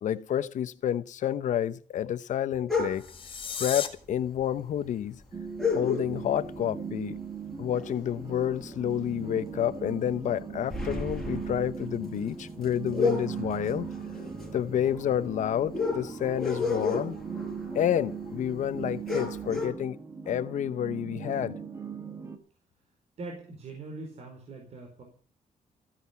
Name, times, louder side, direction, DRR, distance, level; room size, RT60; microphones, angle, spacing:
voice 1, 0.0-3.1 3.6-5.2 5.7-7.2 7.6-13.9 14.5-17.2 17.7-20.0 20.3-21.6, left 10 dB, 65° left, 0.8 m, -29 dB
sound 1, 2.7-3.3 4.2-4.3 4.6-4.7 5.6-6.5 6.9-7.1 7.5-9.1 9.5-9.7 10.1-18.5 18.8-18.9 19.1-19.7, left 4 dB, ahead, 5.0 m, -33 dB
sound 2, 2.9-3.9, left 6 dB, 40° left, 2.0 m, -35 dB
sound 3, 5.3-22.4, right 6 dB, 20° right, 1.7 m, -39 dB
voice 2, 23.2-25.0, right 3 dB, 50° right, 4.7 m, -42 dB
15.5 x 10.5 x 8.3 m
wide cardioid pair, 170°, 14 cm